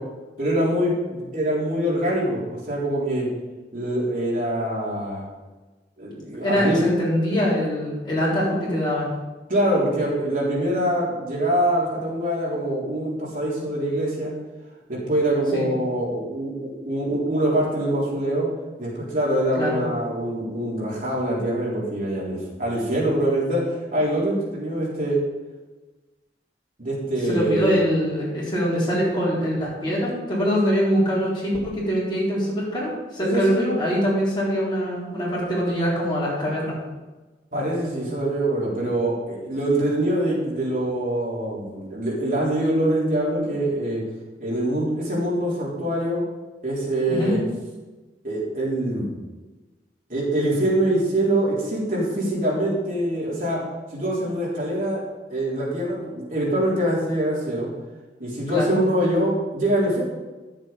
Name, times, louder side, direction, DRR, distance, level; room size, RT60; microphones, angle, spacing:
voice 1, 0.4-3.3 3.7-5.3 6.0-6.9 9.5-14.3 14.9-18.5 18.8-25.2 26.8-27.8 33.2-33.7 37.5-44.0 44.4-46.2 46.6-47.4 48.2-49.1 50.1-53.6 53.9-55.0 55.3-57.7 58.2-60.0, right 1 dB, 50° right, -6 dB, 3.8 m, -24 dB
voice 2, 6.4-9.1 15.5-15.7 19.5-19.8 27.3-36.8 47.1-47.3 58.5-58.8, equal, 25° left, -7 dB, 3.9 m, -23 dB
12.0 x 7.5 x 5.2 m, 1.2 s
head